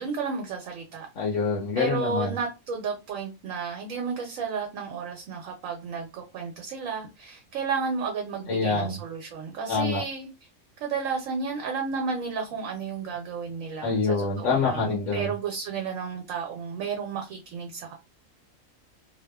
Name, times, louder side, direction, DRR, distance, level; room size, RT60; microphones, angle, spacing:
voice 1, 0.0-1.4 1.8-10.3 10.8-17.9, right 5 dB, 75° right, 1.0 m, -32 dB
voice 2, 1.2-2.3 8.5-9.0 9.7-10.0 13.8-15.3, left 4 dB, 65° left, 1.0 m, -26 dB
2.7 x 2.0 x 2.2 m
omnidirectional pair, 1.4 m